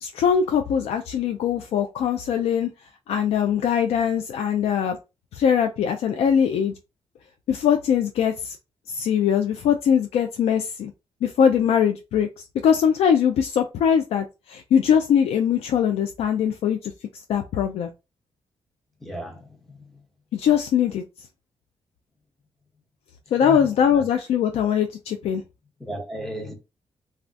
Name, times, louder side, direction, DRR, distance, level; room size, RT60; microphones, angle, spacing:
voice 1, 0.0-2.7 3.1-5.0 5.3-6.7 7.5-8.6 8.9-10.9 11.2-17.9 20.3-21.0 23.3-25.4, left 8 dB, 85° left, 0.4 m, -22 dB
voice 2, 19.0-20.0 23.4-24.0 25.8-26.5, equal, ahead, 0.8 m, -35 dB
3.3 x 2.3 x 2.5 m
wide cardioid pair, 135°, 10 cm